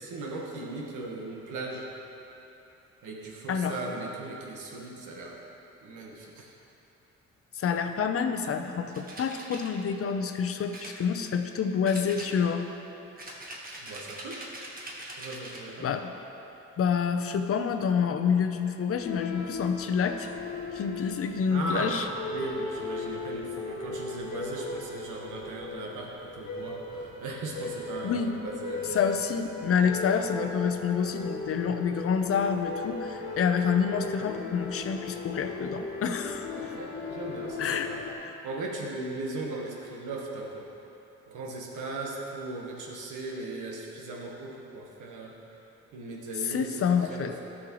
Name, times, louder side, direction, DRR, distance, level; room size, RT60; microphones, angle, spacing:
voice 1, 0.0-1.9 3.0-5.4 5.8-6.5 13.8-14.4 15.2-15.9 21.5-22.0 22.3-29.0 36.5-38.0 38.4-40.7 41.3-45.4 45.9-46.8 47.0-47.4, right 2 dB, 85° right, -1 dB, 1.3 m, -37 dB
voice 2, 7.5-12.7 15.8-16.1 16.8-20.3 20.7-22.1 28.0-28.3 28.9-36.7 37.6-37.9 38.2-38.4 46.4-47.4, left 6 dB, 50° left, 7 dB, 0.6 m, -28 dB
sound 1, 8.9-9.7 10.7-11.5 11.9-12.7 13.2-15.7, right 1 dB, 30° right, 1.4 m, -42 dB
sound 2, 18.9-38.1, left 3 dB, 85° left, 1.4 m, -37 dB
12.5 x 6.4 x 3.1 m, 3.0 s
cardioid pair, 90°, 30 cm